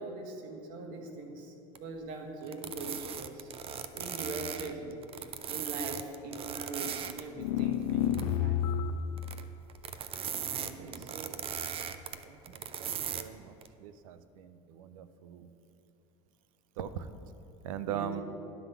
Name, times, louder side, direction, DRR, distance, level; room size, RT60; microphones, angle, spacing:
voice 1, 0.0-3.5 3.9-8.6 10.3-11.0 17.8-18.2, right 3 dB, 60° right, 3 dB, 1.4 m, -42 dB
sound 1, 1.8-1.9 2.4-7.2 7.6-8.3 9.2-9.4 9.7-13.2 13.6-13.7, right 8 dB, 35° right, 0.5 m, -38 dB
sound 2, 7.4-9.2, left 9 dB, 90° left, 0.4 m, -29 dB
voice 2, 10.8-11.5 12.2-15.5 16.8-17.1 17.6-18.2, right 10 dB, 85° right, 12 dB, 0.5 m, -41 dB
11.0 x 3.8 x 6.9 m, 2.8 s
supercardioid pair, 105°, 17 cm